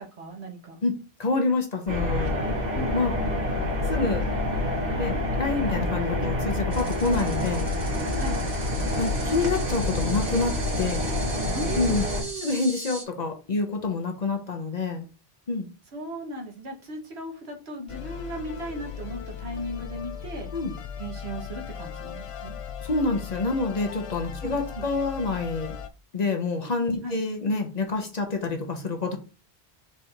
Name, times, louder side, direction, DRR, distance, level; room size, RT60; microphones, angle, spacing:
voice 1, 0.0-0.8 2.7-2.9 8.2-8.4 11.5-12.5 15.9-20.5 21.0-22.6 24.4-24.8 27.0-27.2, right 1 dB, 85° right, 1 dB, 1.4 m, -36 dB
voice 2, 0.8-2.3 2.9-3.1 3.9-4.3 5.0-7.7 9.0-11.1 11.8-12.1 12.4-15.1 15.5-15.7 20.5-20.7 22.8-25.8 26.1-29.2, left 3 dB, 45° left, 4 dB, 0.8 m, -27 dB
sound 1, 1.9-12.2, left 1 dB, 60° right, 1.7 m, -27 dB
sound 2, 6.7-13.0, right 2 dB, 30° right, 1.0 m, -39 dB
sound 3, 17.9-25.9, left 8 dB, 60° left, 0.3 m, -38 dB
4.4 x 2.5 x 4.3 m, 0.33 s
omnidirectional pair, 1.1 m